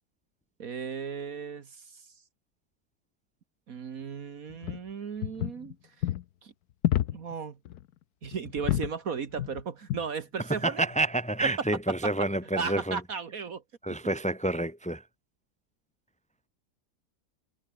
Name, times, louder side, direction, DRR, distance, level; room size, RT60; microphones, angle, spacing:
voice 1, 0.6-2.0 3.7-5.8 6.4-6.5 7.1-7.6 8.2-10.8 11.4-11.5 12.0-12.1 12.6-13.6, right 6 dB, 55° right, 1.7 m, -35 dB
sound 1, 4.5-4.8 5.2-5.7 6.0-6.2 6.8-7.3 7.7-7.8 8.2-8.9 9.3-9.6 9.9-10.1 10.8-11.0, left 12 dB, 70° left, 1.2 m, -29 dB
voice 2, 10.6-13.0 13.8-15.0, right 2 dB, 5° left, 2.4 m, -28 dB
omnidirectional pair, 1.8 m